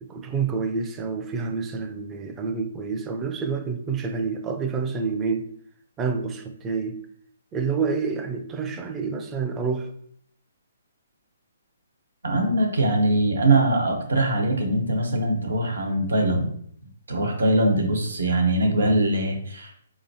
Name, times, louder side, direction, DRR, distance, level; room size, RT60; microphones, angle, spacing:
voice 1, 0.0-5.5 6.0-7.0 7.5-9.9, right 5 dB, 15° right, 5 dB, 0.4 m, -28 dB
voice 2, 12.2-16.5 17.1-19.7, right 1 dB, 85° right, 2 dB, 1.0 m, -22 dB
4.1 x 2.8 x 2.6 m, 0.64 s
hypercardioid pair, 145°, 0 cm